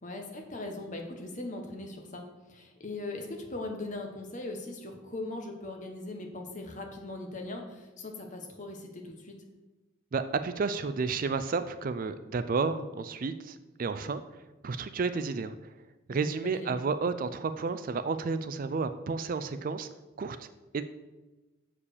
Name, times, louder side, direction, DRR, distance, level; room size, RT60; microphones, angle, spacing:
voice 1, 0.0-9.4 16.1-16.7, left 2 dB, 35° left, 3 dB, 1.2 m, -40 dB
voice 2, 10.1-14.2 14.6-15.7 16.1-19.9 20.2-20.5 20.7-20.8, right 4 dB, 40° right, 12 dB, 0.3 m, -31 dB
7.1 x 4.9 x 6.5 m, 1.1 s
head